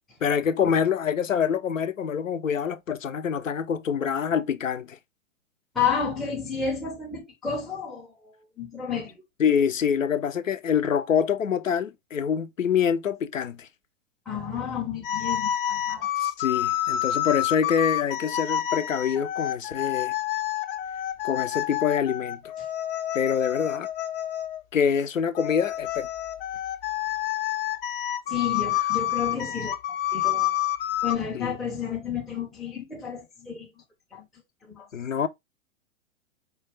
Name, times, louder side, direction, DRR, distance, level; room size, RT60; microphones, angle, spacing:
voice 1, 0.2-5.0 9.4-13.7 16.2-20.1 21.2-22.4 23.1-23.9 24.7-26.1 31.3-31.5 34.9-35.3, left 7 dB, 90° left, 0.6 m, -25 dB
voice 2, 5.7-9.2 14.3-16.1 28.3-30.5 31.0-33.7 34.1-34.3 34.6-34.8, left 6 dB, ahead, 0.5 m, -31 dB
sound 1, 15.0-24.6 25.4-31.2, left 12 dB, 45° left, 0.6 m, -28 dB
4.6 x 2.3 x 3.1 m
figure-of-eight pair, 110°, 38 cm